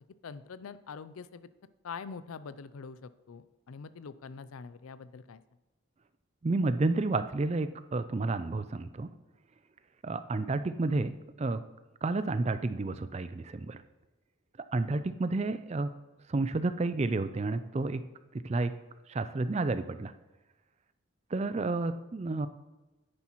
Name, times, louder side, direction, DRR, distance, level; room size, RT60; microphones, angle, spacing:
voice 1, 0.2-1.5 1.8-5.4, left 5 dB, 85° left, 15 dB, 0.5 m, -44 dB
voice 2, 6.4-9.1 10.0-11.1 11.4-11.6 12.0-13.8 14.7-15.9 16.3-18.0 18.4-18.7 19.1-20.1 21.3-22.5, right 3 dB, 30° right, 12 dB, 0.4 m, -30 dB
9.8 x 9.7 x 3.0 m, 1.1 s
head